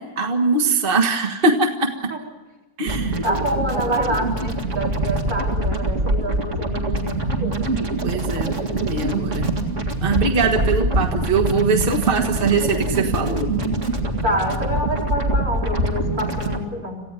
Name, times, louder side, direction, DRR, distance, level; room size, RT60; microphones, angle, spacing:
voice 1, 0.0-2.1 2.8-3.2 8.0-9.5 10.0-13.5, right 4 dB, 40° right, 2 dB, 1.8 m, -22 dB
sound 1, 2.9-16.6, right 2 dB, 55° right, 2.5 m, -24 dB
voice 2, 3.2-7.7 14.2-17.0, equal, 85° right, -2 dB, 4.8 m, -27 dB
27.5 x 16.0 x 9.1 m, 1.1 s
omnidirectional pair, 1.5 m